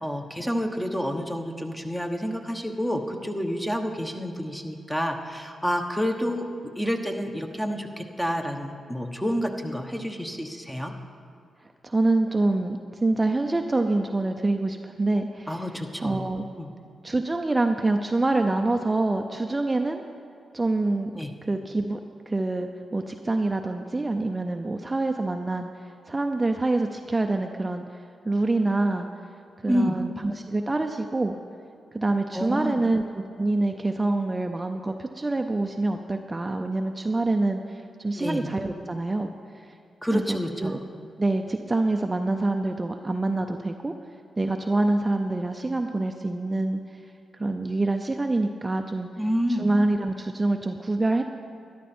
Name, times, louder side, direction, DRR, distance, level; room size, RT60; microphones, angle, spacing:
voice 1, 0.0-6.5 6.8-10.9 15.5-16.3 16.6-16.7 21.1-21.3 29.7-30.0 32.3-32.8 38.1-38.5 40.0-40.8 49.2-49.7, equal, 5° left, 4 dB, 1.2 m, -29 dB
voice 2, 11.8-15.7 16.0-16.4 17.0-20.0 20.5-21.1 21.4-22.0 22.3-27.8 28.2-29.1 29.6-31.3 31.9-39.8 40.1-40.8 41.2-43.9 44.4-49.1 49.6-51.2, right 2 dB, 25° right, 5 dB, 0.6 m, -26 dB
12.5 x 11.5 x 4.4 m, 2.5 s
cardioid pair, 65°, 0 cm